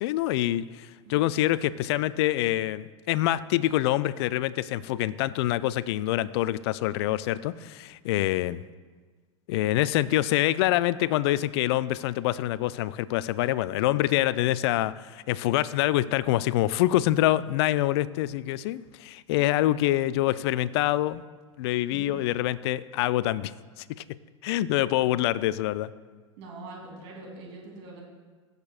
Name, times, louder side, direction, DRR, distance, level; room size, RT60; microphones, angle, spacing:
voice 1, 0.0-8.6 9.5-21.2 21.6-23.5 23.8-24.0 24.4-25.9, left 15 dB, 55° left, 18 dB, 0.4 m, -26 dB
voice 2, 26.4-28.0, right 3 dB, 55° right, -3 dB, 3.1 m, -43 dB
18.0 x 6.6 x 2.4 m, 1.4 s
hypercardioid pair, 90°, 16 cm